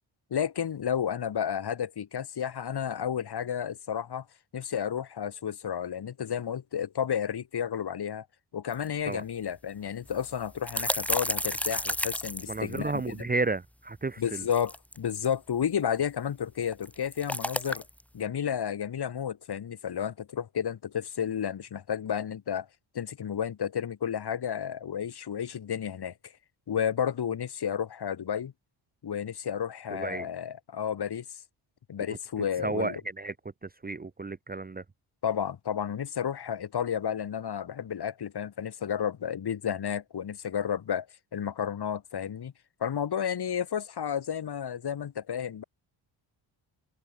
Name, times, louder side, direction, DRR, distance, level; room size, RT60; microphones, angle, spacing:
voice 1, 0.3-4.3 4.5-8.3 8.5-13.2 14.2-17.8 18.1-22.7 22.9-26.3 26.7-28.5 29.0-31.4 31.9-32.9 35.2-41.1 41.3-42.5 42.8-45.6, left 8 dB, 50° left, 4.4 m, -32 dB
sound 1, 8.7-8.8 9.1-9.2 10.1-13.2 14.2-15.3 16.6-18.0, left 1 dB, 5° left, 2.4 m, -32 dB
voice 2, 12.5-14.4 29.9-30.3 32.1-32.2 32.6-33.3 33.6-34.8, right 3 dB, 20° right, 1.2 m, -32 dB
wide cardioid pair, 145°, 49 cm